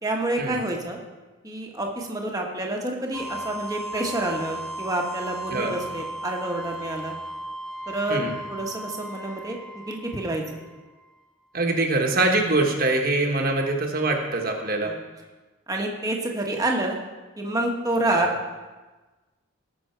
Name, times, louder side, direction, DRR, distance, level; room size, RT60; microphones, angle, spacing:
voice 1, 0.0-1.0 1.4-7.1 7.9-8.2 8.5-9.6 9.9-10.4 14.8-15.0 15.7-16.9 17.4-18.3, right 1 dB, 15° right, 0 dB, 1.3 m, -28 dB
sound 1, 3.1-10.9, right 1 dB, ahead, 0.9 m, -36 dB
voice 2, 11.5-14.9 18.1-18.3, right 2 dB, 45° right, 2 dB, 1.3 m, -24 dB
18.5 x 6.2 x 4.5 m, 1.2 s
head